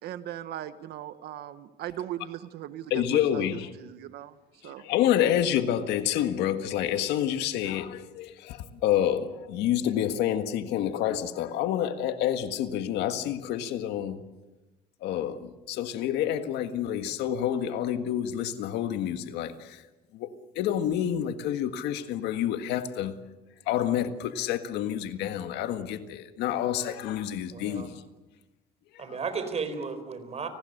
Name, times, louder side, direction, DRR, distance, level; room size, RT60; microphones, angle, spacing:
voice 1, 0.0-4.3 4.6-4.9, right 12 dB, 75° right, 1.1 m, -39 dB
voice 2, 2.9-3.7 4.6-14.2 15.0-19.8 20.1-23.2 23.7-28.0 28.9-29.2, left 10 dB, 85° left, 1.7 m, -28 dB
voice 3, 27.5-27.9 29.0-30.5, right 5 dB, 40° right, 4.2 m, -34 dB
29.5 x 19.5 x 6.7 m
cardioid pair, 110°, 17 cm